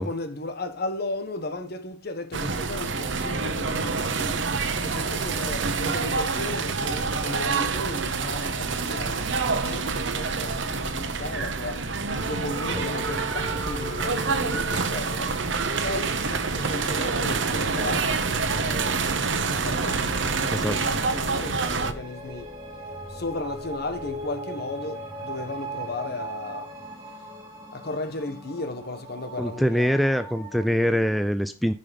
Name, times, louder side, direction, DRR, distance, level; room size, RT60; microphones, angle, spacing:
voice 1, 0.0-4.5 4.8-15.4 15.8-22.5 23.1-26.7 27.7-30.0, left 2 dB, 55° left, 1.2 m, -35 dB
sound 1, 2.3-21.9, right 4 dB, 65° right, 1.0 m, -27 dB
sound 2, 12.2-31.2, right 1 dB, 25° right, 3.2 m, -40 dB
voice 2, 29.4-31.7, equal, ahead, 0.4 m, -24 dB
10.5 x 5.7 x 5.2 m
head